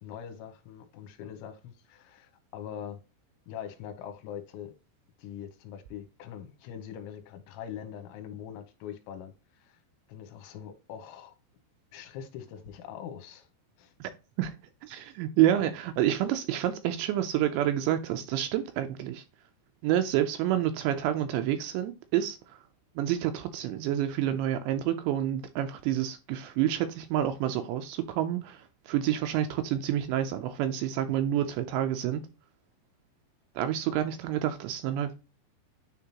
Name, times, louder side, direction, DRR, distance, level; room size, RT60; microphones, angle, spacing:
voice 1, 0.0-3.0 3.5-4.7 5.2-9.3 9.6-9.8 10.1-11.4 11.9-13.5 13.8-13.9, left 9 dB, 80° left, 3.1 m, -42 dB
voice 2, 14.8-19.2 19.8-22.4 23.0-32.2 33.6-35.1, right 11 dB, 80° right, 2.7 m, -28 dB
9.6 x 3.6 x 2.9 m
omnidirectional pair, 5.5 m